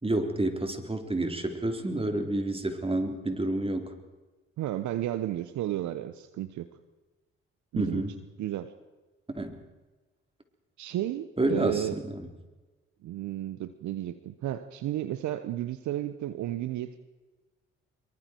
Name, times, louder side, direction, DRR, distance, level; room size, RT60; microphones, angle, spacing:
voice 1, 0.0-3.9 7.8-8.2 9.3-9.6 11.4-12.1, right 1 dB, 20° right, 5 dB, 3.9 m, -29 dB
voice 2, 4.6-6.7 7.7-8.0 8.4-8.7 10.8-12.0 13.0-17.0, right 13 dB, 65° right, 13 dB, 1.1 m, -33 dB
25.5 x 23.0 x 4.6 m, 1.2 s
hypercardioid pair, 50°, 31 cm